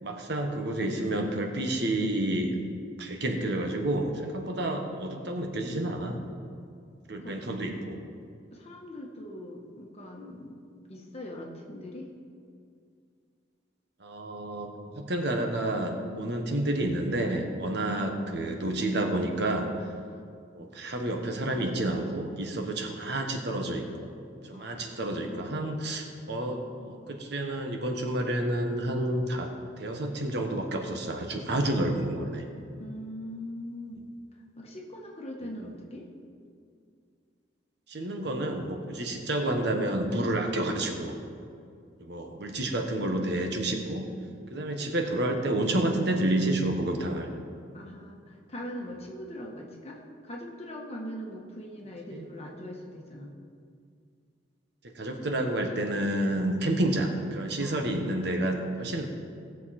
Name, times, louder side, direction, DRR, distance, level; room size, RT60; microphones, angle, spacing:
voice 1, 0.0-2.6 3.0-6.2 7.1-8.0 14.0-19.7 20.5-24.1 24.4-29.5 29.8-32.4 37.9-41.2 42.0-44.1 44.5-47.3 52.1-52.3 54.8-59.0, right 1 dB, 65° right, 3 dB, 1.3 m, -29 dB
voice 2, 8.5-10.6 10.9-12.1 17.9-18.2 24.5-25.5 32.8-34.1 34.3-36.1 47.7-53.3 57.6-57.9, equal, 35° left, 0 dB, 1.5 m, -41 dB
18.0 x 7.0 x 4.3 m, 2.3 s
head